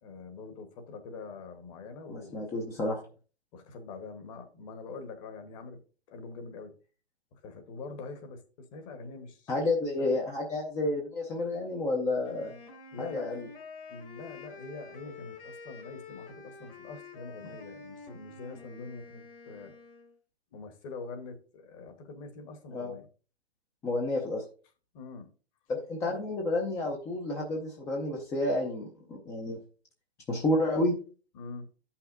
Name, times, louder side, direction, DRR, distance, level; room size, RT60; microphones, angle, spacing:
voice 1, 0.0-2.9 3.5-5.8 6.1-6.7 7.3-9.7 10.0-10.2 12.9-13.4 13.9-19.7 20.5-23.1 24.9-25.3 31.3-31.7, left 4 dB, 30° left, 1.2 m, -44 dB
voice 2, 2.1-3.0 9.5-12.5 13.0-13.4 22.7-22.9 23.8-24.4 25.7-29.6 30.3-31.0, left 2 dB, 10° left, 0.5 m, -30 dB
Wind instrument woodwind instrument, 12.2-20.1, left 4 dB, 55° left, 2.1 m, -48 dB
13.0 x 5.8 x 2.6 m
hypercardioid pair, 140°, 32 cm